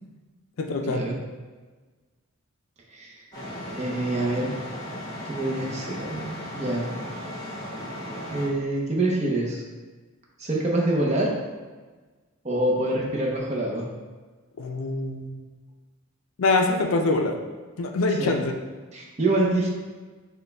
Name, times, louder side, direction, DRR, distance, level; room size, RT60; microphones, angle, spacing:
voice 1, 0.6-1.1 14.6-15.3 16.4-17.4 17.8-18.5, left 3 dB, 70° left, 3 dB, 0.4 m, -24 dB
sound 1, 3.3-8.5, equal, 15° left, 1.0 m, -36 dB
voice 2, 3.7-4.5 5.2-6.9 8.3-9.6 10.4-11.3 12.4-13.9 18.1-18.4 18.9-19.7, right 1 dB, 30° right, -2 dB, 0.7 m, -26 dB
6.3 x 2.2 x 3.4 m, 1.3 s
head